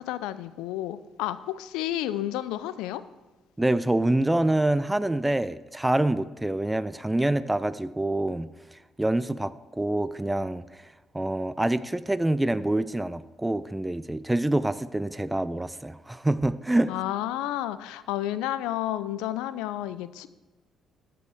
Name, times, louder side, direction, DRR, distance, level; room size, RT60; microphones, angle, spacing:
voice 1, 0.0-3.0 16.9-20.3, left 13 dB, 75° left, 15 dB, 0.5 m, -31 dB
voice 2, 3.6-8.5 9.0-10.6 11.1-16.9, right 1 dB, 10° right, 15 dB, 0.5 m, -26 dB
13.0 x 6.9 x 4.8 m, 1.2 s
hypercardioid pair, 50°, 0 cm